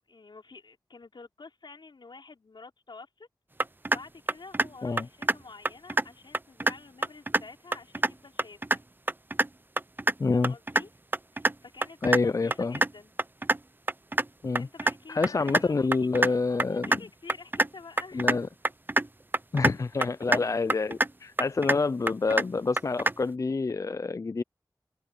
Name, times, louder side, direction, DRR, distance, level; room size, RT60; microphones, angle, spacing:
voice 1, 0.1-3.3 3.9-8.8 10.3-10.9 11.3-13.1 14.6-18.2, left 4 dB, 80° left, 4.6 m, -49 dB
sound 1, 3.6-4.0 4.3-4.7 5.0-5.4 5.7-6.0 6.3-6.7 7.0-7.4 7.7-8.1 8.4-8.8 9.1-9.5 9.8-10.1 10.4-10.8 11.1-11.5 11.8-12.2 12.5-12.9 13.2-13.6 13.9-14.3 14.6-14.9 15.2-15.6 15.9-16.3 16.6-17.0 17.3-17.7 18.0-18.4 18.6-19.1 19.3-19.7 20.0-20.4 20.7-21.1 21.4-21.8 22.1-22.5 22.8-23.1, right 2 dB, 25° right, 0.5 m, -25 dB
voice 2, 10.2-10.5 12.0-12.8 14.4-14.7 15.1-17.0 18.1-18.5 19.5-24.4, left 4 dB, 45° left, 0.3 m, -27 dB
open air
cardioid pair, 45°, 8 cm